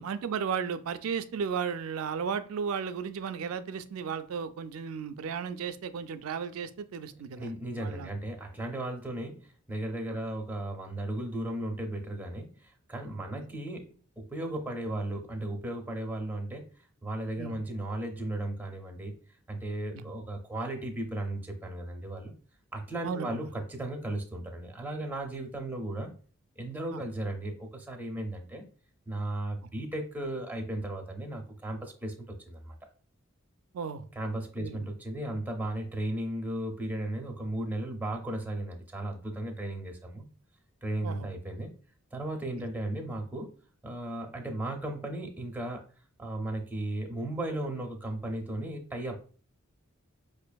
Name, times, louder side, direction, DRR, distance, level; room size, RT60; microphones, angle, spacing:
voice 1, 0.0-7.5 7.8-8.1 10.1-10.2 13.3-13.4 17.4-17.6 19.9-20.1 23.0-23.5 26.9-27.0 33.7-34.0 34.6-34.9 41.0-41.3 42.6-42.7, right 6 dB, 85° right, 0.4 m, -35 dB
voice 2, 7.4-16.6 17.0-19.2 19.5-22.3 22.7-26.1 26.6-28.6 29.1-32.7 34.2-40.3 40.8-41.7 42.1-43.5 43.8-45.8 46.2-49.2, right 1 dB, 10° right, 0.6 m, -35 dB
5.2 x 2.5 x 2.2 m
head